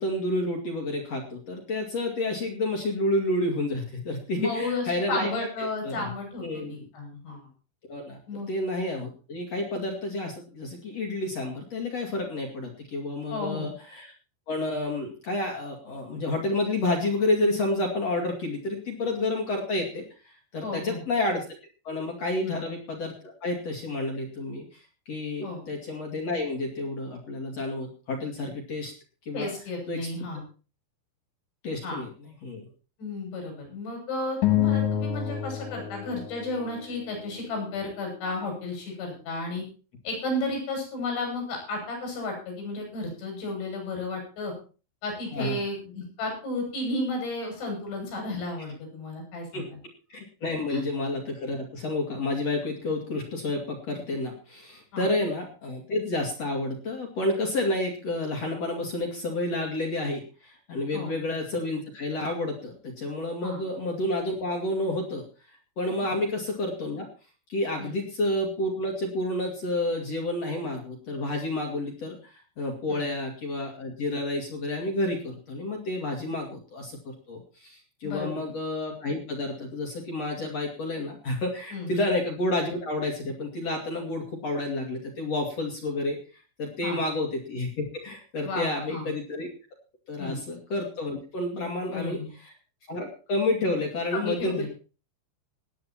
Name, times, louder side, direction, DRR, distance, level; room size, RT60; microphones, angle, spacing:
voice 1, 0.0-5.3 5.6-6.1 6.4-6.8 7.9-8.2 8.5-14.1 14.5-21.4 21.8-24.7 25.1-28.9 29.3-29.5 29.9-30.1 31.6-32.7 45.3-45.6 49.5-49.7 50.1-65.2 65.8-67.1 67.5-86.2 86.6-89.5 90.1-92.5 92.9-94.6, left 2 dB, 40° left, 1 dB, 2.9 m, -30 dB
voice 2, 4.3-7.4 8.3-8.5 13.3-13.7 20.6-21.0 22.4-22.6 25.4-25.6 29.3-30.4 31.8-32.0 33.0-39.6 40.0-44.5 45.0-49.8 50.7-50.8 54.9-55.1 60.9-61.1 63.4-63.6 66.0-66.2 67.8-68.0 72.9-73.1 78.0-78.4 81.7-81.9 86.8-87.0 88.4-89.1 90.2-90.4 91.5-92.3 94.1-94.7, left 2 dB, 75° left, 2 dB, 9.3 m, -33 dB
sound 1, 34.4-37.0, left 11 dB, 60° left, 2.1 m, -27 dB
19.0 x 9.5 x 4.4 m, 0.36 s
omnidirectional pair, 5.3 m